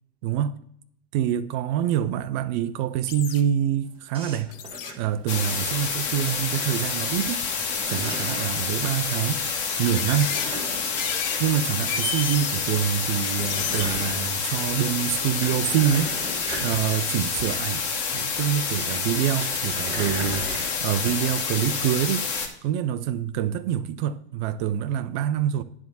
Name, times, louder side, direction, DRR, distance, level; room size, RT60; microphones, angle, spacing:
voice 1, 0.2-0.5 1.1-4.5 4.9-7.5 7.9-10.3 11.1-17.8 18.1-22.3 22.6-25.6, right 10 dB, 45° right, 0.6 m, -26 dB
sound 1, 3.1-3.4 4.5-4.9 5.8-6.1 6.8-6.9 7.1-8.0 8.9-9.0 9.6-10.5 11.0-11.4 11.7-12.7 13.2-14.1 14.4-14.5, left 9 dB, 60° left, 0.8 m, -33 dB
sound 2, 4.1-6.2 6.6-7.1 7.4-8.6 9.9-12.0 12.3-12.4 12.7-12.8 12.9-14.7 15.1-18.2 19.2-21.3, right 2 dB, 15° right, 2.2 m, -38 dB
sound 3, 5.3-22.5, left 5 dB, 45° left, 1.8 m, -28 dB
10.5 x 3.6 x 7.0 m
hypercardioid pair, 100°, 32 cm